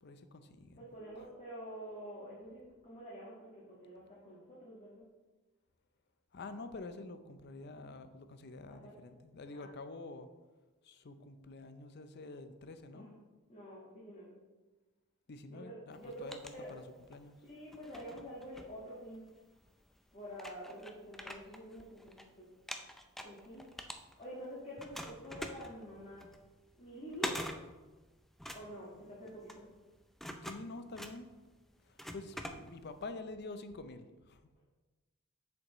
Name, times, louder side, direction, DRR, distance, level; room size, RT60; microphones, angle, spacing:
voice 1, 0.0-0.8 6.3-10.3 10.8-13.1 15.3-16.8 17.1-17.4 28.8-29.1 30.4-31.3 31.9-34.4, left 3 dB, 50° left, 10 dB, 0.5 m, -47 dB
voice 2, 0.8-5.0 8.7-9.0 9.5-9.7 12.9-13.1 13.5-14.3 15.5-16.3 16.5-16.7 17.4-19.2 20.1-22.5 23.2-23.6 24.2-26.3 26.8-27.4 28.5-29.7, equal, 30° left, -7 dB, 1.6 m, -48 dB
sound 1, 15.9-17.2 17.7-19.4 20.0-20.1 20.3-22.2 22.5-24.5 24.8-33.1, equal, ahead, 0.4 m, -45 dB
7.9 x 7.0 x 3.0 m, 1.2 s
head